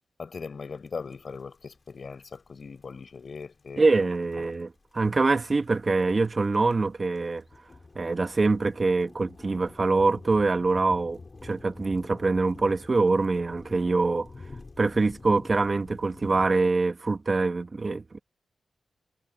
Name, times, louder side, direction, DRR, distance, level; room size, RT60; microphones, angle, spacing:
voice 1, 0.2-4.0, left 5 dB, 60° left, 5.9 m, -39 dB
sound 1, 0.9-16.5, left 3 dB, 40° left, 5.1 m, -48 dB
voice 2, 3.8-7.4 8.0-14.3 14.8-18.2, right 3 dB, 40° right, 2.0 m, -24 dB
cardioid pair, 65°, 0 cm